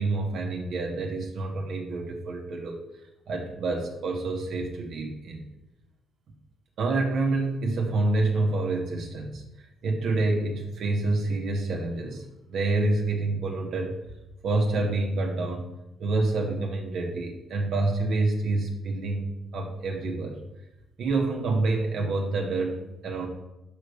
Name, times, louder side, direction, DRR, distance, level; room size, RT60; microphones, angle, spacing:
voice 1, 0.0-2.8 3.3-5.4 6.8-9.5 9.8-12.2 12.5-13.9 14.4-15.7 16.0-20.4 21.0-23.3, right 2 dB, 75° right, 0 dB, 1.4 m, -27 dB
5.6 x 5.3 x 6.3 m, 0.93 s
cardioid pair, 80°, 0 cm